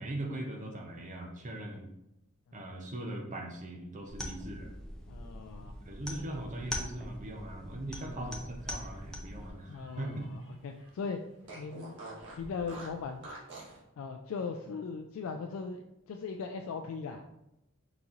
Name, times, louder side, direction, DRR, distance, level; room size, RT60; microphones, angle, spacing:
voice 1, 0.0-1.9 2.5-4.7 5.9-10.2, right 1 dB, 35° right, 2 dB, 0.6 m, -40 dB
sound 1, 4.1-9.5, left 1 dB, 5° left, 0.5 m, -42 dB
voice 2, 5.1-5.7 8.0-8.3 9.7-11.2 11.5-12.0 12.3-13.2 14.0-17.3, left 5 dB, 70° left, 4 dB, 0.3 m, -39 dB
Fart, 8.5-10.5 10.8-10.9 11.4-13.8, right 2 dB, 60° right, 1.3 m, -48 dB
4.0 x 3.0 x 3.6 m, 0.87 s
head